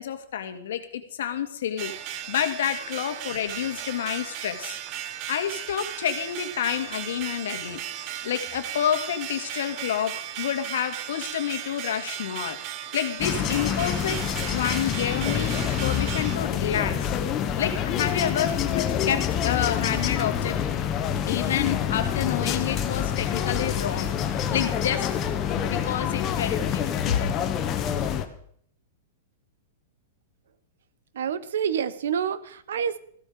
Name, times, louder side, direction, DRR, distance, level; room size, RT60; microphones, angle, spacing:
voice 1, 0.0-1.9 2.3-4.8 5.3-7.8 8.2-17.1 17.6-20.6 21.3-24.2 24.5-25.1 25.6-27.3, left 9 dB, 65° left, 8 dB, 2.0 m, -29 dB
sound 1, 1.8-16.4, right 11 dB, 25° right, 0.8 m, -36 dB
sound 2, 13.2-28.2, left 9 dB, 20° left, 1.0 m, -27 dB
voice 2, 31.1-33.0, right 8 dB, 70° right, 15 dB, 1.1 m, -28 dB
15.0 x 12.5 x 4.9 m, 0.63 s
supercardioid pair, 180°, 0 cm